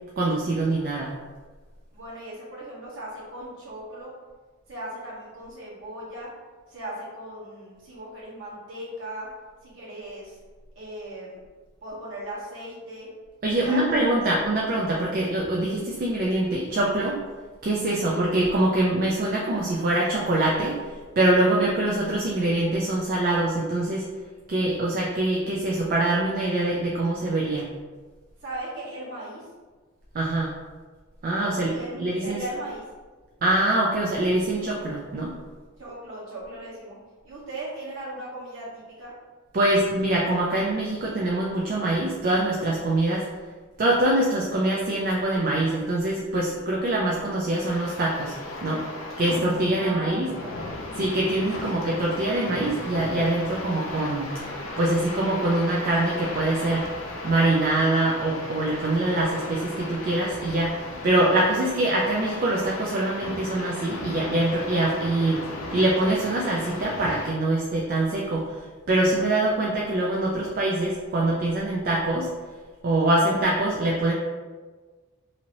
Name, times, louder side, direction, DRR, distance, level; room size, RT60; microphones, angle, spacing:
voice 1, 0.2-1.1 13.4-17.2 17.6-24.1 24.5-27.7 30.1-30.5 31.2-31.7 32.0-32.4 33.4-35.4 39.5-43.3 43.8-48.4 48.6-48.9 49.2-50.3 50.9-54.3 54.8-56.9 57.2-72.3 72.8-74.1, right 1 dB, 45° right, -3 dB, 0.4 m, -24 dB
voice 2, 1.9-4.1 4.7-6.3 6.7-9.3 9.6-10.3 10.7-11.4 11.8-13.1 13.6-14.4 18.0-18.2 28.4-29.5 31.3-32.8 35.8-37.0 37.2-39.1 49.8-50.5 51.6-51.8, right 1 dB, 65° right, -7 dB, 1.2 m, -38 dB
sound 1, 47.5-67.3, left 2 dB, 80° left, 0.6 m, -36 dB
2.8 x 2.6 x 2.9 m, 1.4 s
head